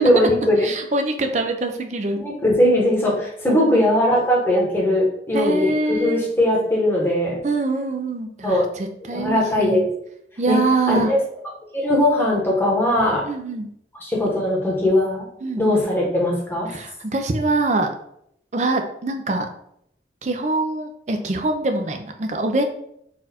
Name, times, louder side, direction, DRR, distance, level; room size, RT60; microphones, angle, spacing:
voice 1, 0.0-0.7 2.2-7.4 8.4-8.6 9.1-9.9 10.5-11.2 11.7-13.2 14.0-15.3 15.6-16.7, left 1 dB, 10° left, -4 dB, 1.1 m, -19 dB
voice 2, 0.6-2.2 3.5-3.8 5.3-6.2 7.4-9.8 10.4-11.1 13.2-13.7 15.4-15.8 16.7-17.9 18.5-19.5 20.2-22.6, right 2 dB, 40° right, 5 dB, 0.5 m, -24 dB
4.1 x 2.5 x 4.1 m, 0.73 s
head